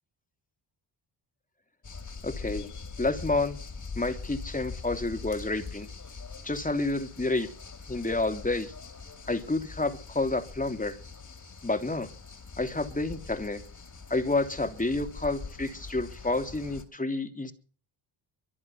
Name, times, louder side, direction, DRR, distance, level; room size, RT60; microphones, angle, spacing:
sound 1, 1.8-16.8, left 4 dB, 40° left, 3.7 m, -43 dB
voice 1, 2.2-2.7 3.0-3.6 4.0-5.9 6.4-7.5 7.9-8.7 9.3-11.0 11.6-12.1 12.6-13.6 14.1-17.5, left 2 dB, 15° left, 7 dB, 3.2 m, -29 dB
24.5 x 8.6 x 5.9 m, 0.43 s
cardioid pair, 70°, 48 cm